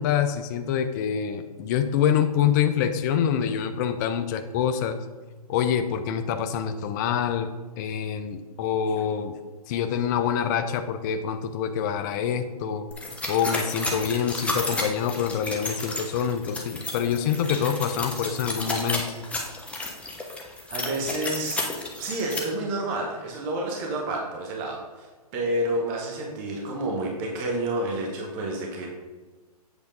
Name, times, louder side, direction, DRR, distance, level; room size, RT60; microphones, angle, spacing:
voice 1, 0.0-5.0 5.5-7.5 7.8-9.4 9.7-12.9 13.3-19.0, left 8 dB, 30° left, 8 dB, 0.4 m, -26 dB
sound 1, 12.9-22.4, left 2 dB, 5° left, 0.8 m, -32 dB
voice 2, 20.7-21.6 22.0-25.1 25.3-28.9, right 1 dB, 30° right, 0 dB, 1.2 m, -29 dB
8.1 x 3.4 x 5.2 m, 1.3 s
hypercardioid pair, 130°, 20 cm